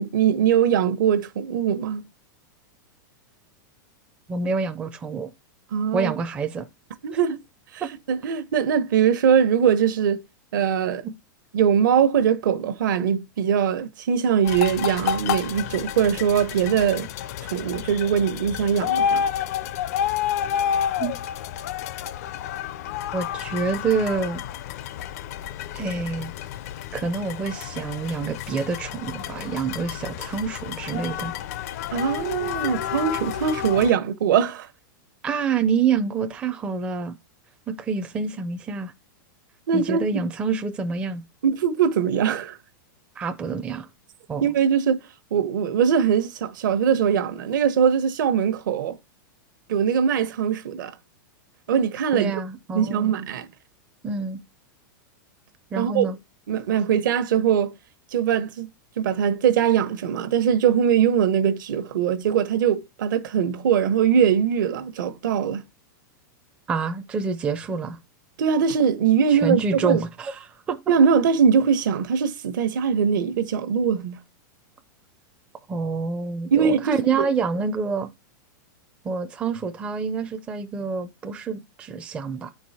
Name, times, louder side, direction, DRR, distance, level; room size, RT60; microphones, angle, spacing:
voice 1, 0.0-2.0 5.7-6.1 7.0-7.4 7.7-7.8 8.1-10.2 10.5-11.0 11.5-17.1 17.4-19.2 31.9-34.7 39.7-40.0 41.4-42.6 44.4-45.0 45.3-49.0 49.7-50.9 51.7-52.4 52.7-53.5 55.8-56.1 56.5-57.7 58.1-58.7 59.0-65.6 68.4-70.0 70.9-74.2 76.5-77.0, right 7 dB, 70° right, 1.1 m, -21 dB
voice 2, 4.3-5.3 5.9-6.7 7.8-7.9 21.0-21.1 23.1-24.4 25.7-26.3 26.9-31.3 35.2-37.2 37.7-38.9 39.7-41.2 43.2-43.9 44.3-44.5 52.1-53.1 54.0-54.4 55.7-56.2 66.7-68.0 69.3-70.8 75.7-78.1 79.0-82.5, right 5 dB, 10° right, 0.4 m, -27 dB
sound 1, 14.4-33.9, left 9 dB, 50° left, 0.4 m, -30 dB
9.2 x 4.6 x 4.1 m
supercardioid pair, 170°, 11 cm